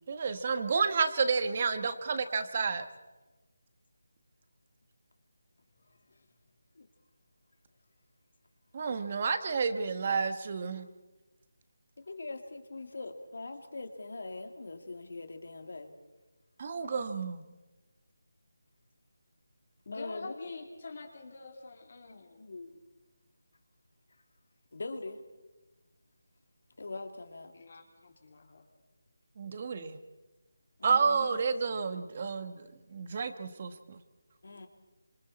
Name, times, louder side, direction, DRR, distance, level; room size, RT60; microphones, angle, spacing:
voice 1, 0.1-2.8 8.7-10.9 16.6-17.4 29.4-30.0 30.8-34.0, right 5 dB, 30° right, 10 dB, 1.4 m, -30 dB
voice 2, 12.0-15.9 19.9-20.3 22.1-22.8 24.7-25.2 26.8-27.5 30.8-31.4 34.4-34.7, left 3 dB, 65° left, 6 dB, 2.8 m, -42 dB
voice 3, 19.9-22.4 27.5-28.6, left 3 dB, 45° left, 2 dB, 3.5 m, -46 dB
28.5 x 26.5 x 4.3 m, 1.2 s
figure-of-eight pair, 170°, 0 cm